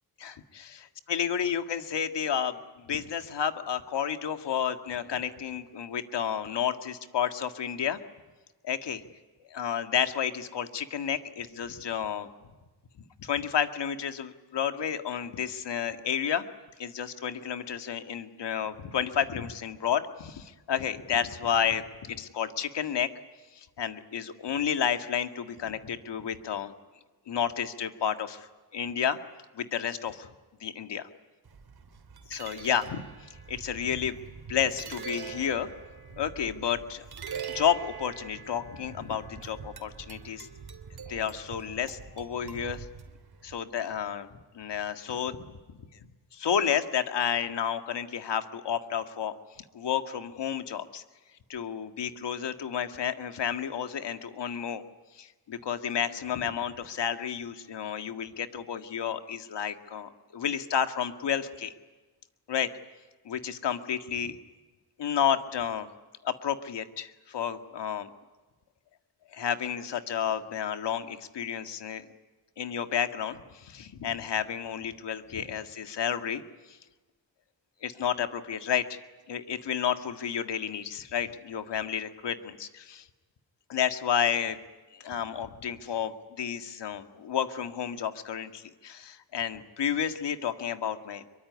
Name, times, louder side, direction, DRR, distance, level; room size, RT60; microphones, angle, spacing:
voice 1, 0.2-0.7 1.1-8.0 8.6-9.0 9.5-12.3 13.2-16.4 16.8-23.1 23.5-26.7 27.3-29.2 29.5-30.3 30.6-31.1 32.3-34.2 34.5-35.7 36.2-37.0 37.5-40.5 41.1-42.9 43.4-44.3 44.5-45.5 46.3-49.3 49.7-51.0 51.5-54.8 55.1-61.7 62.5-62.7 63.3-64.4 65.0-65.9 66.2-68.1 69.3-72.1 72.6-76.4 76.7-76.8 77.8-79.0 79.3-83.1 83.7-84.6 84.9-91.4, left 8 dB, 80° left, 8 dB, 2.0 m, -31 dB
sound 1, 31.4-43.5, right 6 dB, 60° right, 3.1 m, -44 dB
25.5 x 23.5 x 9.7 m, 1.3 s
cardioid pair, 95°, 41 cm